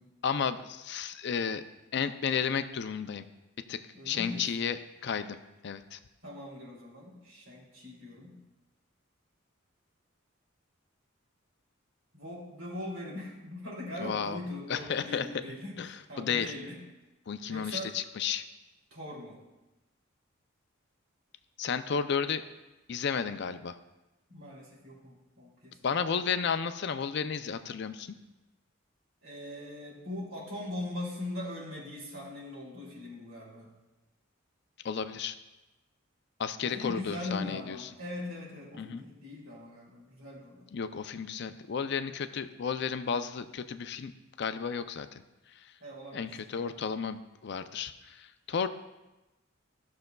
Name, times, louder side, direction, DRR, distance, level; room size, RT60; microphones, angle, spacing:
voice 1, 0.2-1.6 1.9-3.3 3.7-5.4 5.6-6.0 14.0-14.4 14.7-15.3 15.8-16.5 17.3-18.4 21.6-22.4 22.9-23.8 25.8-28.1 34.8-35.4 36.4-37.9 38.8-39.0 40.7-44.1 44.4-45.2 45.5-45.7 46.1-48.7, left 6 dB, 55° left, 11 dB, 0.4 m, -33 dB
voice 2, 3.9-4.5 6.2-8.4 12.1-16.8 17.5-17.9 18.9-19.4 24.3-26.0 29.2-33.7 36.6-40.7 45.8-46.3, left 1 dB, 85° right, -3 dB, 2.8 m, -41 dB
14.0 x 6.5 x 2.3 m, 1.0 s
head